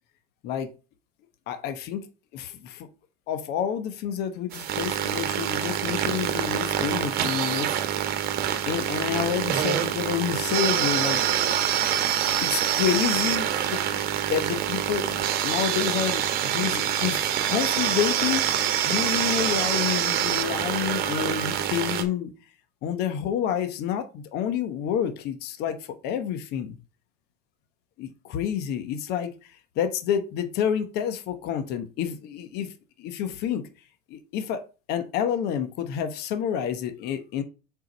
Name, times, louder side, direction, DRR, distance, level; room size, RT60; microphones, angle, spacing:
voice 1, 1.5-2.0 2.3-2.9 3.3-7.7 8.7-11.2 12.4-18.5 18.8-22.3 22.8-26.8 28.0-32.7 33.0-33.6 34.1-34.6 34.9-37.4, left 9 dB, 55° left, 0.9 m, -29 dB
sound 1, 4.5-22.0, right 10 dB, 50° right, 1.1 m, -26 dB
4.6 x 3.9 x 5.2 m
supercardioid pair, 125°, 20 cm